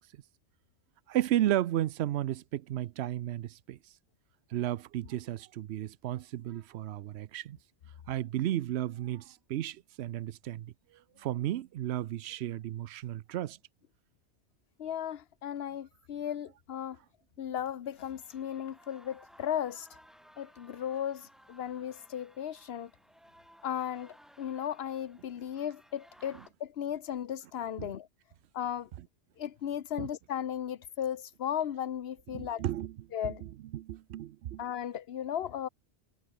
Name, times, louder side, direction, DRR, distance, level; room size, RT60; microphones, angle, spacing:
voice 1, 1.1-3.8 4.5-7.6 8.1-10.7 11.2-13.6 27.8-27.9 30.0-30.1 32.3-32.9 33.7-34.6, right 13 dB, 75° right, 0.8 m, -33 dB
voice 2, 14.8-17.0 17.4-20.0 20.4-22.9 23.6-28.1 28.5-28.9 29.4-32.6 33.1-33.4 34.6-35.7, left 9 dB, 65° left, 1.0 m, -36 dB
sound 1, 17.8-26.5, equal, ahead, 3.0 m, -59 dB
omnidirectional pair, 1.2 m